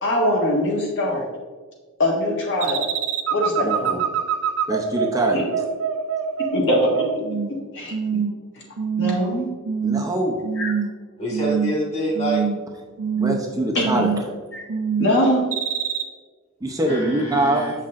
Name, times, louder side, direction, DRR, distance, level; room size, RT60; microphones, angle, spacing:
voice 1, 0.0-1.3 2.0-2.9 3.3-4.0 5.3-5.4 6.4-7.1 7.5-7.9 9.0-9.5 10.6-10.7 13.7-14.0 14.5-14.6 15.0-15.4, left 1 dB, 60° left, -2 dB, 1.5 m, -22 dB
sound 1, 2.6-7.6 7.9-8.4 8.8-9.3 9.6-10.1 10.4-11.0 11.3-11.8 12.1-12.7 13.0-13.5 13.8-14.3 14.7-15.1 15.5-16.0, right 7 dB, 80° right, 0.6 m, -24 dB
voice 2, 3.6-4.0 4.7-5.4 9.8-10.4 13.1-14.1 16.6-17.7, right 1 dB, 15° right, 0 dB, 0.6 m, -23 dB
voice 3, 11.2-12.5 16.9-17.7, right 1 dB, 30° left, -2 dB, 1.7 m, -26 dB
7.2 x 5.6 x 2.5 m, 1.4 s
head